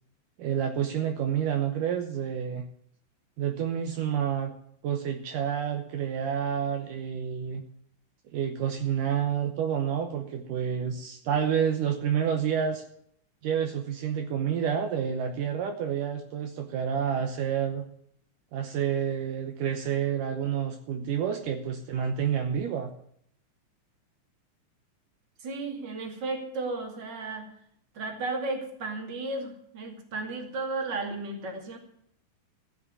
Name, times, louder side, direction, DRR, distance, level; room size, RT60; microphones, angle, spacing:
voice 1, 0.4-2.7 3.4-4.5 4.8-7.6 8.3-12.8 13.4-17.8 18.5-22.9, right 8 dB, 75° right, 5 dB, 2.5 m, -29 dB
voice 2, 25.4-27.5 27.9-31.8, right 3 dB, 35° right, 3 dB, 2.7 m, -34 dB
15.0 x 6.4 x 9.6 m, 0.69 s
omnidirectional pair, 4.0 m